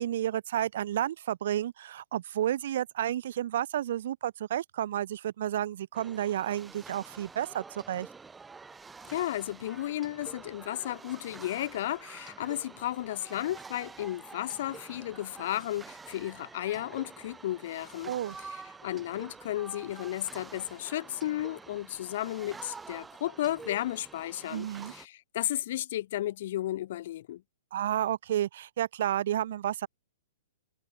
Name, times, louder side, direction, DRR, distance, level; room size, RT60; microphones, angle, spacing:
voice 1, 0.0-8.1 18.0-18.4 24.5-24.9 27.7-29.9, right 11 dB, 55° right, 2.1 m, -31 dB
sound 1, 5.9-25.1, right 4 dB, 10° right, 5.7 m, -48 dB
voice 2, 9.1-18.1 18.4-27.4, left 13 dB, 55° left, 3.2 m, -34 dB
figure-of-eight pair, 115°, 0 cm